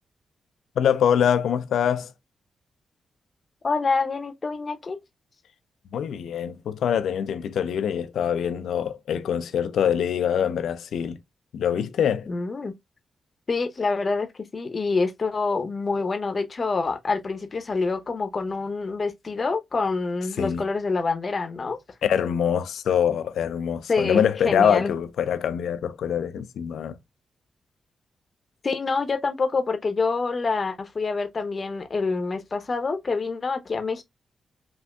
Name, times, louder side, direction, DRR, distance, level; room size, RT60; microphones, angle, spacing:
voice 1, 0.8-2.1 5.9-11.2 11.5-12.3 20.4-20.6 22.0-27.0, left 8 dB, 75° left, 0.3 m, -24 dB
voice 2, 3.6-5.0 12.3-12.7 13.5-14.3 14.5-21.8 23.9-24.9 28.6-34.0, left 4 dB, 50° left, 0.6 m, -26 dB
3.6 x 2.5 x 2.2 m
supercardioid pair, 45°, 0 cm